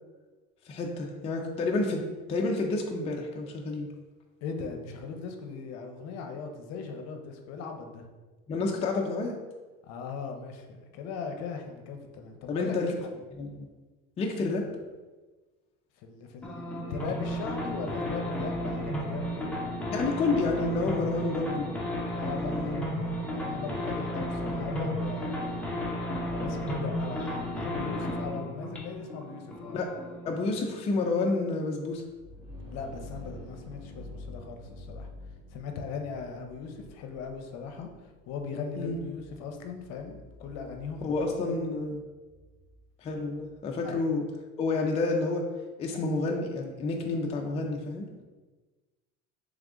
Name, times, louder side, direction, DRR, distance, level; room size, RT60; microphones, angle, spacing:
voice 1, 0.7-3.9 8.5-9.4 12.5-12.9 13.4-13.7 14.2-14.7 19.9-21.7 22.3-22.8 29.7-29.9 30.2-32.0 38.8-39.0 41.0-42.0 43.0-44.2 44.6-45.5 45.8-48.2, left 3 dB, 20° left, 1 dB, 0.3 m, -29 dB
voice 2, 4.4-8.0 9.8-13.1 16.0-19.6 22.1-25.7 26.2-29.8 32.6-35.1 35.5-41.3 43.8-44.0 48.2-48.3, left 5 dB, 60° left, 4 dB, 0.7 m, -39 dB
sound 1, 16.4-30.5, equal, 5° left, 0.7 m, -33 dB
sound 2, 32.0-43.6, left 1 dB, 15° right, 1.3 m, -48 dB
3.6 x 3.5 x 3.6 m, 1.3 s
cardioid pair, 150°, 29 cm